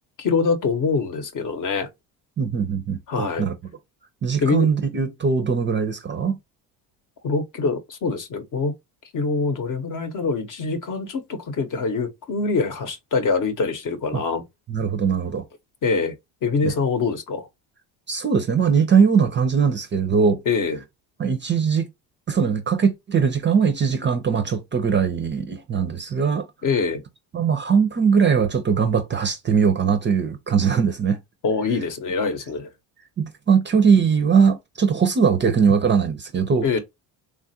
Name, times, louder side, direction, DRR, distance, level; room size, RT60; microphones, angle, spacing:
voice 1, 0.2-1.9 3.1-3.5 4.4-4.7 7.2-8.7 9.1-14.4 15.8-16.1 16.4-17.5 20.5-20.8 26.6-27.0 31.4-32.7 36.6-36.8, left 4 dB, 45° left, 0.8 m, -24 dB
voice 2, 2.4-3.5 4.2-6.4 14.1-14.2 14.7-15.4 16.6-16.7 18.1-20.4 21.2-21.9 22.3-26.5 27.3-31.2 33.2-36.8, right 6 dB, 25° right, 0.5 m, -20 dB
3.2 x 2.3 x 2.7 m
cardioid pair, 100°, 45 cm